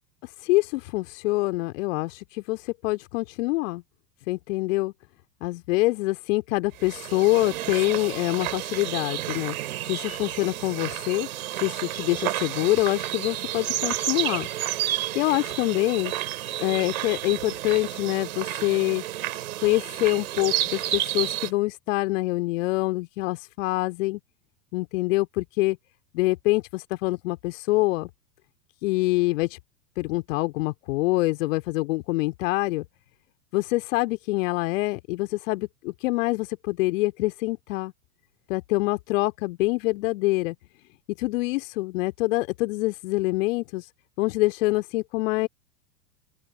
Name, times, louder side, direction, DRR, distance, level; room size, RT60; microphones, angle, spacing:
voice 1, 0.2-3.8 4.3-4.9 5.4-9.6 9.8-11.3 11.5-14.5 15.1-16.1 16.6-19.0 19.6-24.2 24.7-25.8 26.1-28.1 28.8-29.6 30.0-32.9 33.5-37.9 38.5-40.6 41.1-43.9 44.2-45.5, left 21 dB, 50° left, 2.5 m, -25 dB
sound 1, 6.8-21.5, right 13 dB, 60° right, 5.9 m, -31 dB
open air
figure-of-eight pair, 95°, 49 cm